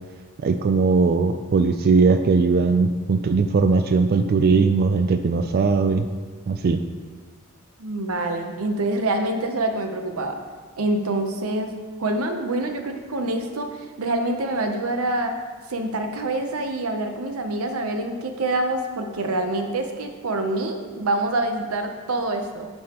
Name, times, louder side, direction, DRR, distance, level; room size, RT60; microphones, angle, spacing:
voice 1, 0.4-6.1 6.5-6.8, right 4 dB, 45° right, 8 dB, 0.3 m, -19 dB
voice 2, 7.8-10.4 10.8-15.3 15.7-22.7, right 2 dB, 90° right, 5 dB, 0.8 m, -26 dB
11.0 x 5.5 x 3.0 m, 1.5 s
head